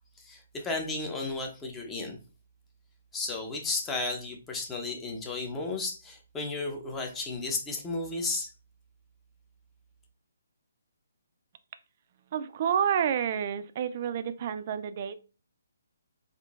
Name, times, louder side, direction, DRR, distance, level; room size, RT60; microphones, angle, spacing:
voice 1, 0.2-2.2 3.1-8.5, left 3 dB, 15° left, 2 dB, 0.6 m, -33 dB
voice 2, 12.3-15.2, right 8 dB, 40° right, 11 dB, 0.3 m, -29 dB
3.6 x 2.5 x 2.4 m, 0.34 s
hypercardioid pair, 150°, 0 cm